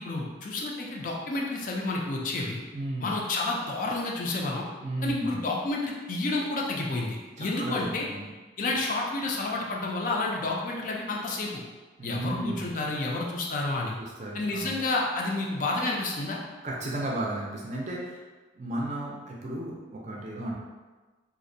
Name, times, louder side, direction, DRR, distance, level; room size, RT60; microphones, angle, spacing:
voice 1, 0.0-2.6 3.0-4.7 5.0-8.1 8.6-11.6 12.0-13.9 14.3-16.4, left 2 dB, 45° left, -1 dB, 0.3 m, -30 dB
voice 2, 2.7-3.1 4.8-5.4 7.4-7.8 8.0-8.3 12.0-12.7 14.0-14.8 16.6-18.2 18.6-20.5, right 1 dB, 40° right, -3 dB, 0.4 m, -34 dB
2.5 x 2.0 x 2.6 m, 1.3 s
head